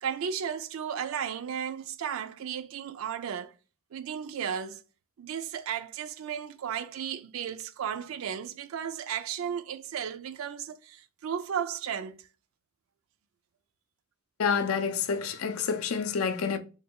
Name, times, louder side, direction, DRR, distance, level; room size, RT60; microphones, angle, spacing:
voice 1, 0.0-3.5 3.9-4.8 5.2-12.2, right 8 dB, 70° right, 0.4 m, -34 dB
voice 2, 14.4-16.6, left 6 dB, 80° left, 0.5 m, -28 dB
3.3 x 2.3 x 4.3 m
head